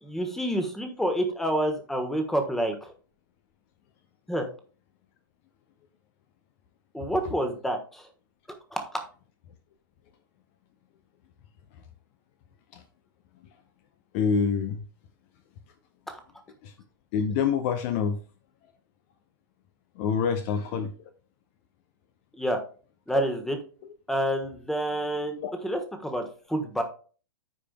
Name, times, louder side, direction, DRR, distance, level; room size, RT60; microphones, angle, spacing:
voice 1, 0.0-2.9 4.3-4.5 6.9-8.0 8.7-8.9 16.1-16.2 22.4-22.6 23.1-23.6 24.1-26.8, right 1 dB, 5° left, 6 dB, 1.2 m, -28 dB
voice 2, 14.1-14.8 16.6-16.7 17.1-18.2 20.0-20.9 25.4-25.5, left 6 dB, 35° left, 9 dB, 0.7 m, -26 dB
14.0 x 5.0 x 2.2 m, 0.39 s
figure-of-eight pair, 105°, 12 cm